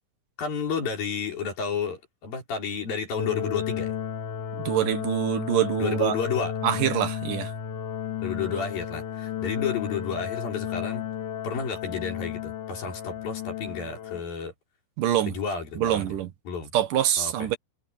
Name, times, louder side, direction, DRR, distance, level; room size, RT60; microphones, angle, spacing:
voice 1, 0.4-3.9 5.8-6.5 8.2-11.0 11.4-14.5 15.3-16.2 16.5-16.7 17.2-17.5, left 5 dB, 85° left, 6.9 m, -31 dB
sound 1, 3.2-14.2, left 9 dB, 65° left, 2.8 m, -33 dB
voice 2, 4.5-6.2 6.6-7.5 15.0-15.4 15.8-16.3 16.7-17.6, right 11 dB, 70° right, 2.8 m, -25 dB
omnidirectional pair, 4.0 m